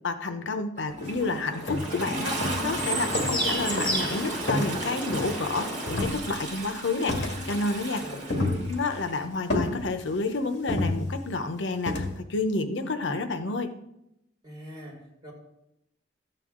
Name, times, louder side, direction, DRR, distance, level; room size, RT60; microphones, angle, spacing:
voice 1, 0.0-8.0 8.7-13.7, left 3 dB, 85° left, 9 dB, 0.8 m, -30 dB
Toilet flush, 0.8-9.2 10.2-10.3, right 2 dB, 40° right, 2.3 m, -35 dB
sound 1, 1.0-1.2 1.7-2.1 2.4-3.5 3.8-4.1 4.5-5.5 5.9-6.6 7.1-7.7 8.0-9.0 9.5-10.2 10.7-11.4 11.9-12.2, left 2 dB, 65° left, 1.8 m, -30 dB
sound 2, 1.2-6.0, equal, 5° left, 3.6 m, -33 dB
voice 2, 8.0-8.6 14.4-15.3, equal, 25° right, -4 dB, 5.0 m, -42 dB
13.5 x 9.0 x 3.7 m, 0.85 s
head